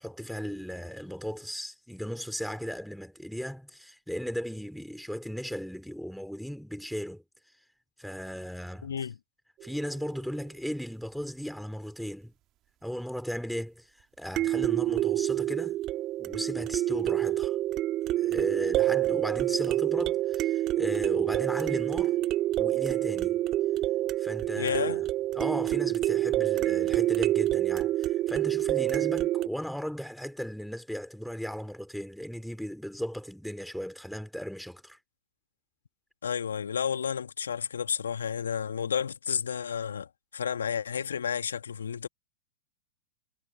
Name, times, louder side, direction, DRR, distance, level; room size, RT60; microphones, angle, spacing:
voice 1, 0.0-7.2 8.0-8.9 9.6-12.3 12.8-15.8 16.2-17.6 18.2-22.2 22.6-23.4 24.2-25.1 25.3-35.0, equal, ahead, 4.1 m, -36 dB
voice 2, 8.8-9.2 24.6-25.0 36.2-42.1, left 7 dB, 70° left, 2.1 m, -31 dB
sound 1, 9.6-9.7 14.4-29.5, right 14 dB, 35° right, 2.2 m, -27 dB
figure-of-eight pair, 100°, 0 cm